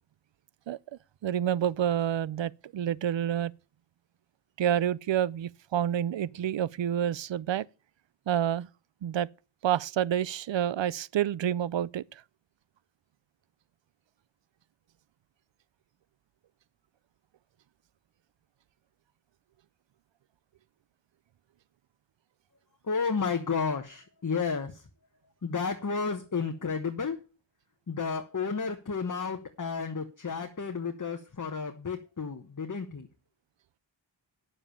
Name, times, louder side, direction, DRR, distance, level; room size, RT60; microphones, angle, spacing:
voice 1, 1.2-3.5 4.6-7.6 8.3-8.7 9.0-9.3 9.6-12.0, right 10 dB, 65° right, 0.6 m, -28 dB
voice 2, 22.9-24.8 25.4-27.2 27.9-33.1, left 5 dB, 40° left, 1.2 m, -32 dB
9.8 x 7.3 x 7.0 m
wide cardioid pair, 85°, 48 cm